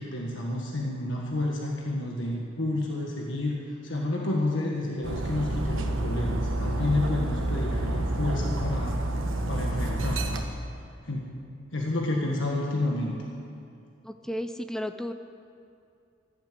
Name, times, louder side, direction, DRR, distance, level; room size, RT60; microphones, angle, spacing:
voice 1, 0.0-9.0 9.5-10.4 11.0-11.3 11.7-13.2, left 2 dB, 60° left, -2 dB, 1.6 m, -30 dB
Dog, 5.0-10.4, right 1 dB, 70° right, 1.3 m, -29 dB
voice 2, 14.0-15.1, equal, ahead, 8 dB, 0.4 m, -33 dB
14.5 x 12.0 x 7.6 m, 2.4 s
head